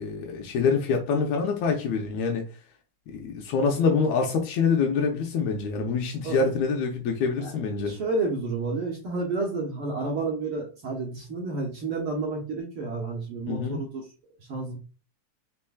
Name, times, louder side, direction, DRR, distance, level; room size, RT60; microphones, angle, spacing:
voice 1, 0.0-2.5 3.1-7.9 13.5-13.8, left 5 dB, 80° left, 2.0 m, -25 dB
voice 2, 7.8-14.1 14.5-14.8, right 3 dB, 60° right, 1.7 m, -30 dB
4.5 x 4.4 x 2.3 m
omnidirectional pair, 3.3 m